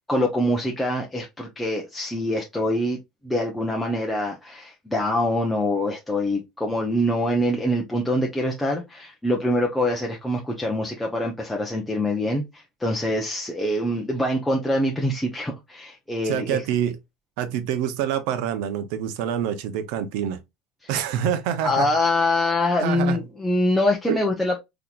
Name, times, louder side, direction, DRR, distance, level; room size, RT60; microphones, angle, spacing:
voice 1, 0.1-3.0 3.2-16.6 21.6-24.6, left 1 dB, 5° left, 0.6 m, -24 dB
voice 2, 16.2-17.0 17.4-20.4 20.9-21.9 22.8-23.2 24.1-24.2, right 9 dB, 75° right, 0.7 m, -26 dB
3.7 x 2.9 x 2.3 m
cardioid pair, 145°, 0 cm